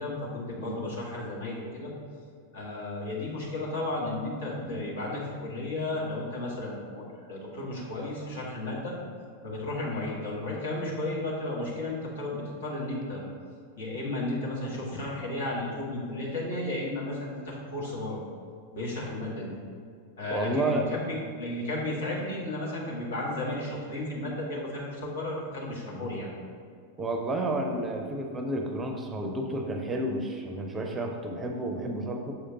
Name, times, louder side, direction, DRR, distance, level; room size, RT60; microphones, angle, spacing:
voice 1, 0.0-1.9 2.5-8.9 9.4-13.2 13.8-18.2 18.7-19.5 20.2-26.3, left 2 dB, 60° left, -4 dB, 1.4 m, -33 dB
voice 2, 20.3-20.9 25.9-26.1 27.0-32.3, right 1 dB, 15° right, 3 dB, 0.6 m, -31 dB
6.8 x 5.0 x 2.8 m, 2.2 s
figure-of-eight pair, 90°, 0 cm